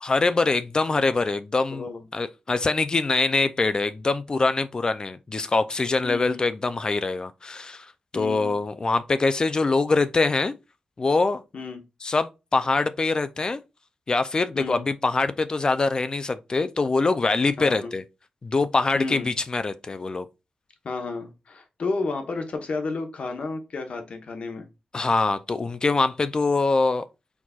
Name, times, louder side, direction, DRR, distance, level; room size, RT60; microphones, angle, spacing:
voice 1, 0.0-7.9 8.1-10.5 11.0-11.4 12.0-13.6 14.1-18.0 18.4-20.3 24.9-27.0, left 3 dB, 35° left, 0.3 m, -24 dB
voice 2, 1.7-2.1 6.0-6.4 8.1-8.6 11.5-11.8 14.5-14.9 17.6-17.9 18.9-19.3 20.8-24.7, left 3 dB, 55° left, 1.0 m, -32 dB
4.5 x 4.1 x 2.3 m
wide cardioid pair, 120°, 3 cm